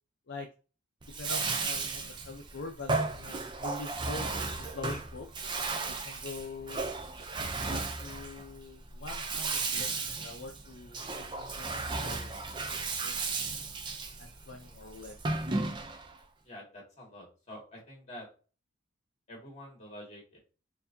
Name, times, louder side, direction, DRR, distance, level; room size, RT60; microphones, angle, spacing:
Bathtub (filling or washing), 1.0-16.2, right 3 dB, 25° right, 0.5 m, -35 dB
voice 1, 1.2-4.3 4.6-5.3 5.9-6.9 7.7-9.9 10.2-12.4 12.7-13.4 14.2-15.2, left 3 dB, 60° left, 2 dB, 0.5 m, -44 dB
sound 1, 2.8-4.2 4.4-8.0, right 2 dB, 85° right, 1.3 m, -55 dB
voice 2, 16.4-18.3 19.3-20.4, left 1 dB, 35° left, -2 dB, 1.8 m, -47 dB
4.6 x 2.6 x 2.7 m, 0.35 s
head